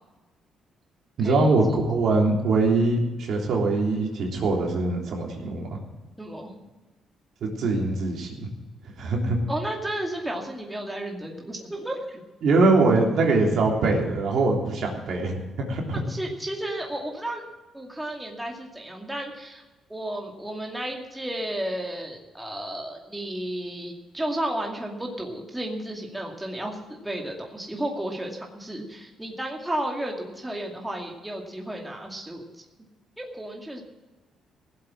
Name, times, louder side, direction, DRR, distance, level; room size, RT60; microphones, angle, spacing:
voice 1, 1.2-5.8 7.4-8.5 9.0-9.4 12.4-16.0, right 3 dB, 70° right, 0 dB, 3.3 m, -23 dB
voice 2, 6.2-6.5 9.5-12.2 15.9-17.4 17.7-19.6 19.9-32.6 33.2-33.8, right 1 dB, 10° right, 0 dB, 2.4 m, -33 dB
16.5 x 7.8 x 7.4 m, 1.2 s
cardioid pair, 90°, 0 cm